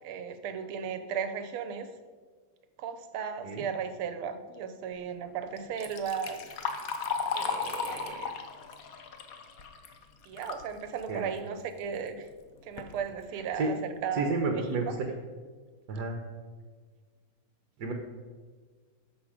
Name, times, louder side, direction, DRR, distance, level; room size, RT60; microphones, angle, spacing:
voice 1, 0.0-1.9 2.8-6.4 7.3-8.3 10.3-12.3 12.6-15.0, right 7 dB, 85° right, 9 dB, 1.7 m, -36 dB
Liquid, 5.6-10.7 11.1-11.2 12.1-12.2 12.6-12.9 13.5-13.6 14.1-14.2 14.6-14.9, left 5 dB, 55° left, 1.0 m, -35 dB
voice 2, 14.1-14.9 15.9-16.2 17.8-17.9, right 3 dB, 60° right, 3 dB, 1.4 m, -30 dB
11.5 x 6.8 x 4.9 m, 1.5 s
omnidirectional pair, 2.3 m